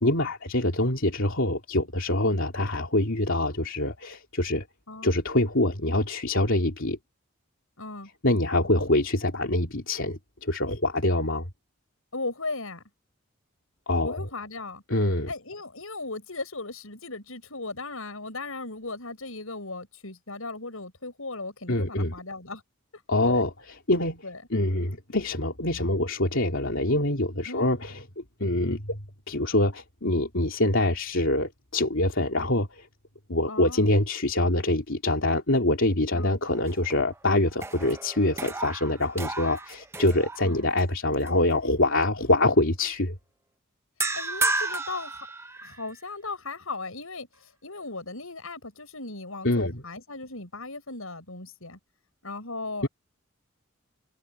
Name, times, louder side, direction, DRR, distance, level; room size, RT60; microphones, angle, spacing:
voice 1, 0.0-4.7 5.0-7.0 8.2-11.5 13.9-14.3 14.9-15.3 21.7-22.1 23.1-24.2 24.5-29.0 29.3-32.9 33.3-43.1 49.4-49.8 52.8-52.9, left 1 dB, 65° left, 3.1 m, -25 dB
voice 2, 7.8-8.1 12.1-12.8 14.0-14.8 15.3-22.6 23.3-23.4 24.2-24.4 27.5-27.7 33.5-33.8 36.1-36.3 40.4-40.7 44.1-45.3 45.6-47.3 47.6-51.8 52.2-52.9, left 3 dB, 80° left, 6.5 m, -37 dB
sound 1, 36.5-37.2 37.5-40.8 41.3-41.5 44.0-45.9, right 3 dB, 10° right, 0.8 m, -32 dB
head